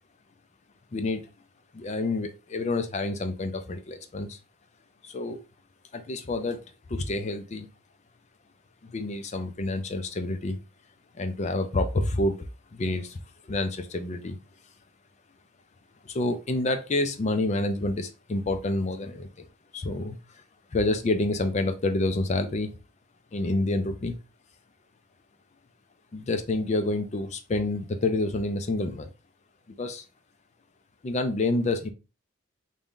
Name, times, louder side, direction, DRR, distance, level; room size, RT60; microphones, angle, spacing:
voice 1, 0.9-1.2 1.7-4.4 5.0-5.4 5.9-6.6 6.9-7.7 8.8-10.6 11.2-13.2 13.4-14.4 16.0-19.5 19.7-20.4 20.7-22.7 23.3-24.2 26.1-29.1 29.7-30.0 31.0-31.9, left 2 dB, 35° left, 8 dB, 0.4 m, -28 dB
3.5 x 2.7 x 3.6 m, 0.31 s
head